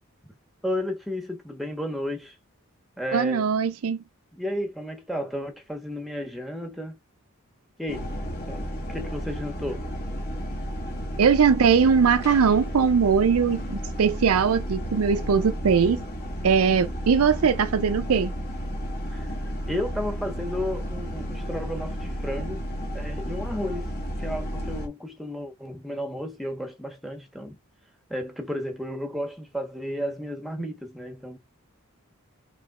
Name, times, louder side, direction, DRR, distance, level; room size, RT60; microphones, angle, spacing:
voice 1, 0.6-2.4 3.0-3.5 4.3-6.9 7.8-8.1 8.5-9.9 19.1-22.6 22.9-23.9 24.2-27.6 28.1-31.4, left 1 dB, ahead, 1.1 m, -33 dB
voice 2, 3.1-4.0 11.2-16.0 16.4-18.3, right 6 dB, 80° right, 0.5 m, -21 dB
sound 1, 7.9-24.9, equal, 45° left, 1.8 m, -32 dB
5.0 x 3.8 x 2.4 m
head